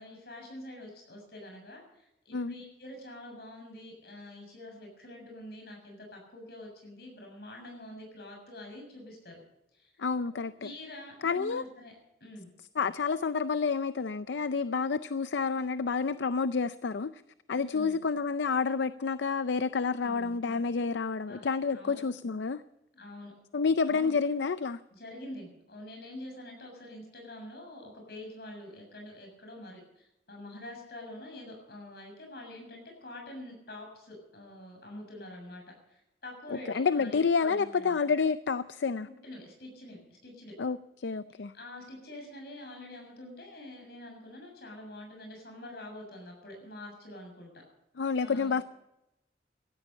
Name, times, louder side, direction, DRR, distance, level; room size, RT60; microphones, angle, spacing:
voice 1, 0.0-9.4 9.7-9.9 10.3-12.5 17.5-18.0 20.0-20.4 21.2-22.0 22.9-23.3 23.9-24.1 24.9-38.0 39.1-40.6 41.5-47.6 48.2-48.6, left 1 dB, 60° left, 2 dB, 7.0 m, -46 dB
voice 2, 10.0-10.7 11.2-11.6 12.8-17.1 17.5-22.6 23.5-24.8 36.7-39.1 40.6-41.5 48.0-48.6, left 5 dB, 80° left, 13 dB, 0.5 m, -29 dB
17.0 x 13.5 x 5.5 m, 0.88 s
head